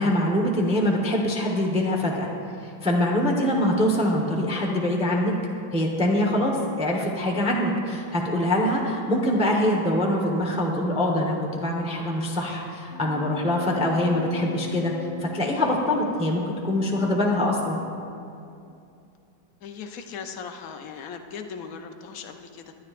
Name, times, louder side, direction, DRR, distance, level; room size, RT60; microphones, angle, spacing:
voice 1, 0.0-2.3 2.8-5.3 5.7-14.9 15.2-17.8, left 1 dB, 5° right, -1 dB, 0.6 m, -24 dB
Wind instrument woodwind instrument, 12.9-18.3, left 11 dB, 50° right, 2.2 m, -39 dB
voice 2, 19.6-22.7, left 6 dB, 65° left, 5 dB, 0.9 m, -38 dB
20.0 x 10.5 x 2.5 m, 2.6 s
omnidirectional pair, 2.1 m